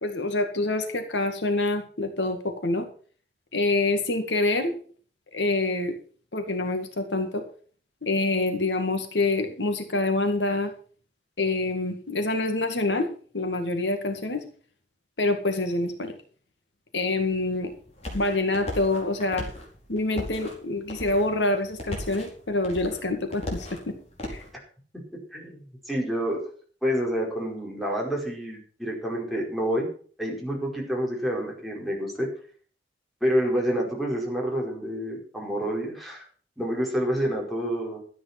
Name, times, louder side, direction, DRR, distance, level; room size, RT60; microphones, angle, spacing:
voice 1, 0.0-2.9 3.5-4.7 5.3-5.9 6.3-7.4 8.0-10.7 11.4-13.1 13.3-14.4 15.2-16.1 16.9-17.7 18.1-19.5 19.9-24.0 24.3-24.4, left 2 dB, 80° left, 6 dB, 2.1 m, -26 dB
sound 1, 17.2-24.5, left 1 dB, 40° left, 4.9 m, -38 dB
voice 2, 25.9-26.4 26.8-29.9 30.2-32.3 33.2-36.2 36.6-38.0, equal, ahead, -2 dB, 4.8 m, -28 dB
13.0 x 9.4 x 6.0 m, 0.44 s
head